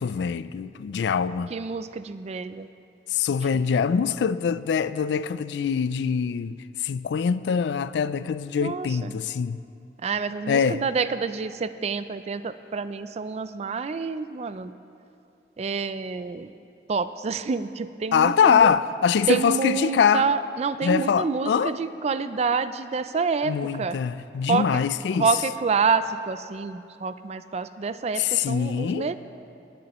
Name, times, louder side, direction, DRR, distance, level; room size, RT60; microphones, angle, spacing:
voice 1, 0.0-1.5 3.1-9.6 10.5-10.8 18.1-20.3 20.8-21.8 23.4-25.5 28.2-29.1, left 6 dB, 75° left, 0.3 m, -24 dB
voice 2, 1.5-2.7 8.6-8.9 10.0-14.7 15.6-16.5 16.9-18.7 19.3-23.5 23.8-24.0 24.5-24.8 25.2-29.2, right 5 dB, 35° right, 0.4 m, -27 dB
19.0 x 9.4 x 3.0 m
head